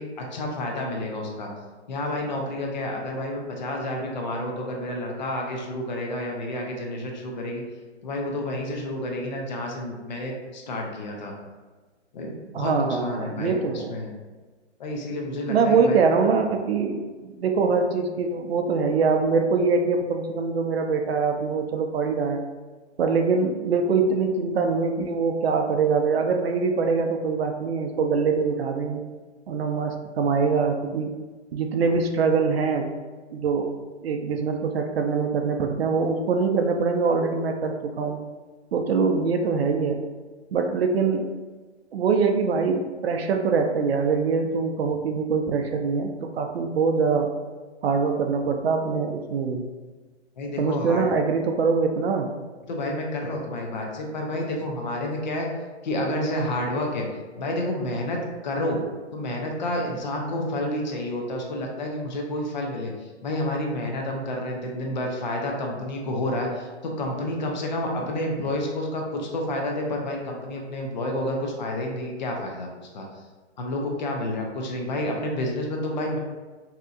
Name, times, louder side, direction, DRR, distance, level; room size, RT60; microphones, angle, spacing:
voice 1, 0.0-1.5 1.9-7.6 8.0-11.3 12.1-14.1 14.8-16.0 50.4-51.1 52.7-55.5 55.8-57.1 57.4-58.8 59.1-72.7 72.9-73.3 73.6-76.2, left 1 dB, 40° left, 0 dB, 0.5 m, -29 dB
voice 2, 12.5-13.9 15.5-22.4 23.0-29.0 29.5-31.1 31.5-32.9 33.3-33.7 34.0-38.2 38.7-40.0 40.5-41.3 41.9-47.3 47.8-49.7 50.6-52.3, right 5 dB, 60° right, 4 dB, 0.5 m, -23 dB
3.7 x 2.7 x 2.4 m, 1.3 s
hypercardioid pair, 155°, 35 cm